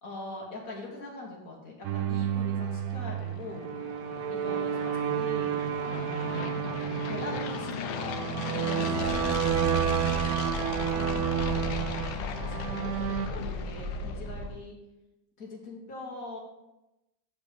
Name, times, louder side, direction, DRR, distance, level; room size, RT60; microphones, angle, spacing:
voice 1, 0.0-3.7 4.3-5.6 5.9-6.5 7.1-9.8 10.8-14.8 15.4-16.4, left 2 dB, 45° left, -2 dB, 2.1 m, -43 dB
sound 1, 1.8-13.3, right 9 dB, 85° right, 0.8 m, -30 dB
sound 2, 2.2-14.5, left 7 dB, 75° left, 1.3 m, -38 dB
sound 3, 9.0-14.5, left 1 dB, 45° right, 3.4 m, -37 dB
8.5 x 5.1 x 5.1 m, 0.97 s
omnidirectional pair, 2.1 m